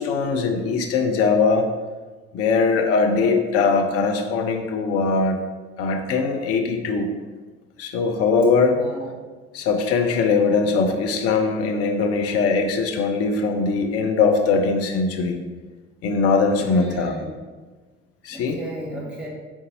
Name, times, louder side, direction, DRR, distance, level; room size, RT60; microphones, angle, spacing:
voice 1, 0.0-1.6 2.3-5.4 5.8-7.1 7.8-8.8 9.5-15.4 16.0-17.1 18.2-18.6, left 4 dB, 45° left, 5 dB, 0.5 m, -21 dB
voice 2, 8.6-9.1 16.6-17.2 18.3-19.3, equal, 5° right, -3 dB, 1.2 m, -35 dB
3.9 x 3.5 x 2.6 m, 1.3 s
figure-of-eight pair, 55°, 35 cm